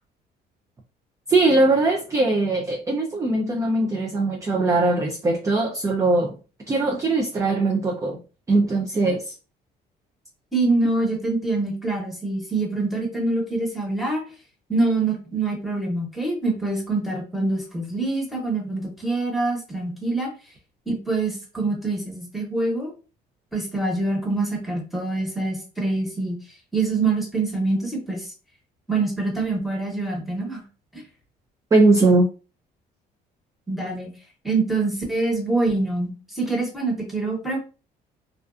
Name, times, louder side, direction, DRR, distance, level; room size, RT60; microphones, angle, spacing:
voice 1, 1.3-6.3 6.7-8.2 8.5-9.3 31.7-32.3, right 2 dB, 20° right, 2 dB, 0.3 m, -20 dB
voice 2, 10.5-14.2 14.7-20.3 20.9-22.9 23.5-26.4 26.7-28.3 28.9-30.6 30.9-31.0 33.7-34.1 34.4-37.6, right 3 dB, ahead, -1 dB, 1.0 m, -25 dB
2.3 x 2.3 x 2.4 m, 0.34 s
cardioid pair, 110°, 17 cm